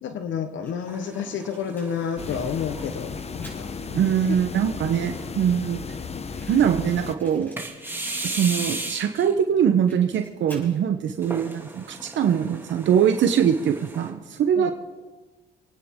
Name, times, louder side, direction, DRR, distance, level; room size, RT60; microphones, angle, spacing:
voice 1, 0.0-3.7 4.3-4.4 5.5-5.6 14.6-14.7, left 7 dB, 70° left, 8 dB, 1.1 m, -30 dB
Fire, 0.6-4.4 5.1-5.2 5.4-5.5 5.7-5.8 6.3-9.2 9.5-10.8, right 1 dB, 10° left, 5.8 m, -50 dB
sound 1, 0.9-3.4 4.0-4.1 4.8-5.5 7.6-9.3 11.2-14.1, right 2 dB, 10° right, 2.5 m, -36 dB
sound 2, 2.2-7.2, left 5 dB, 30° left, 0.9 m, -35 dB
voice 2, 3.9-5.9 6.5-7.5 8.2-14.7, right 8 dB, 70° right, 6 dB, 1.0 m, -22 dB
27.0 x 9.5 x 3.7 m, 1.3 s
cardioid pair, 90°, 20 cm